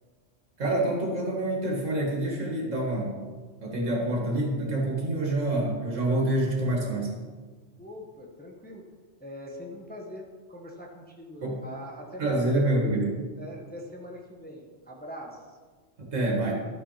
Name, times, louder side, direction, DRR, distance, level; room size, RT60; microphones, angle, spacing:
voice 1, 0.6-3.3 3.6-7.1 11.4-11.6 12.2-13.2 16.0-16.5, right 1 dB, 90° right, -1 dB, 2.3 m, -27 dB
voice 2, 7.8-8.8 9.2-12.7 13.4-15.6, equal, 10° left, 0 dB, 1.1 m, -42 dB
12.0 x 6.0 x 5.8 m, 1.4 s
omnidirectional pair, 1.3 m